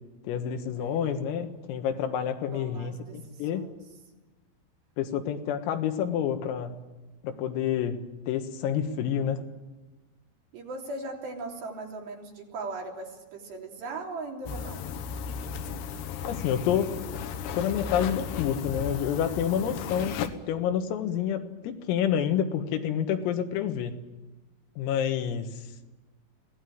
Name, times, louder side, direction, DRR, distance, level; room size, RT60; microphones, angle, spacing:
voice 1, 0.2-3.7 5.0-6.7 7.2-8.0 8.3-9.4 16.3-16.9 17.5-20.1 20.5-23.9 24.8-25.5, left 9 dB, 85° left, 6 dB, 4.2 m, -28 dB
voice 2, 0.8-1.3 2.5-3.7 10.5-14.8 19.6-20.1, right 3 dB, 60° right, 0 dB, 5.3 m, -39 dB
sound 1, 14.5-20.3, left 7 dB, 70° left, 2.6 m, -35 dB
24.5 x 18.0 x 9.4 m, 1.2 s
omnidirectional pair, 5.9 m